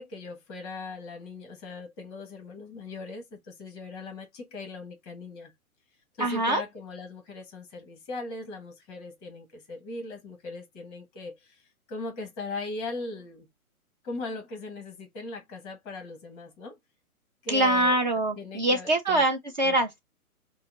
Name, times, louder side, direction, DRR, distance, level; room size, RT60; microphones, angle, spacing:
voice 1, 0.0-5.5 6.2-13.5 14.0-16.8 17.4-18.0 18.4-19.2 19.6-19.7, left 3 dB, 15° left, 0.9 m, -39 dB
voice 2, 6.2-6.6 17.5-20.0, right 1 dB, 30° right, 0.6 m, -24 dB
5.7 x 2.0 x 3.8 m
figure-of-eight pair, 125°, 44 cm